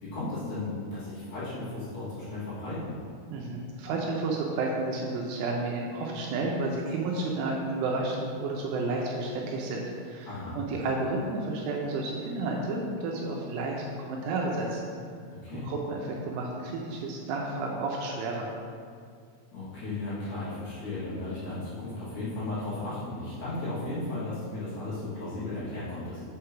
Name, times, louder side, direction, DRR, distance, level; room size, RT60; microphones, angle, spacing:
voice 1, 0.0-2.9 10.3-10.6 15.3-15.7 19.5-26.2, left 2 dB, 55° left, -12 dB, 3.2 m, -35 dB
voice 2, 3.3-14.9 15.5-18.5, right 2 dB, 80° right, -1 dB, 3.0 m, -31 dB
8.0 x 3.4 x 5.7 m, 2.2 s
omnidirectional pair, 5.9 m